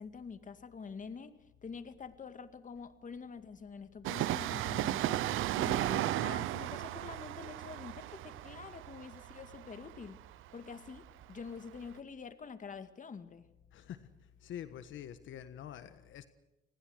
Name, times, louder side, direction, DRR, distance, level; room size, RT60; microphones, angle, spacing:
voice 1, 0.0-1.3 1.6-5.2 5.6-10.2 10.5-13.5, left 5 dB, 40° left, 10 dB, 2.1 m, -46 dB
Train, 4.0-11.5 11.7-11.8, right 14 dB, 90° right, 0.8 m, -35 dB
voice 2, 13.7-14.1 14.4-16.3, left 10 dB, 80° left, 11 dB, 1.5 m, -46 dB
29.5 x 20.0 x 6.5 m, 0.97 s
cardioid pair, 90°, 20 cm